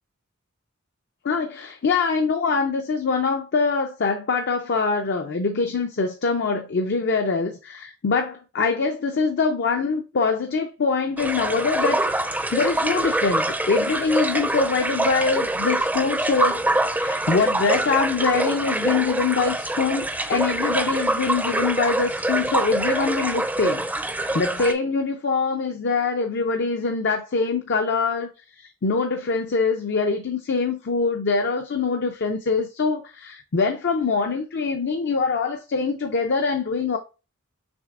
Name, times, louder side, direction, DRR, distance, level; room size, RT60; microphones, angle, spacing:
voice 1, 1.2-16.6 16.9-23.9 24.3-28.3 28.6-37.0, left 4 dB, 55° left, 0.5 m, -24 dB
sound 1, 11.2-24.7, right 1 dB, 10° right, 0.5 m, -25 dB
6.1 x 3.3 x 2.5 m
head